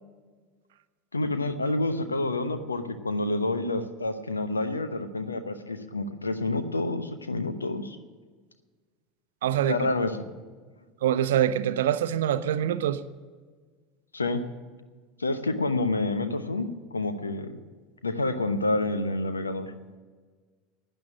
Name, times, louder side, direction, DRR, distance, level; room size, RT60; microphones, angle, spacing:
voice 1, 1.1-8.0 9.7-10.3 14.1-14.4 15.2-17.5 18.0-19.7, left 2 dB, 80° left, 10 dB, 0.9 m, -28 dB
voice 2, 9.4-9.9 11.0-13.0, right 10 dB, 65° right, 13 dB, 0.7 m, -25 dB
12.0 x 9.1 x 9.8 m, 1.5 s
figure-of-eight pair, 75°, 0 cm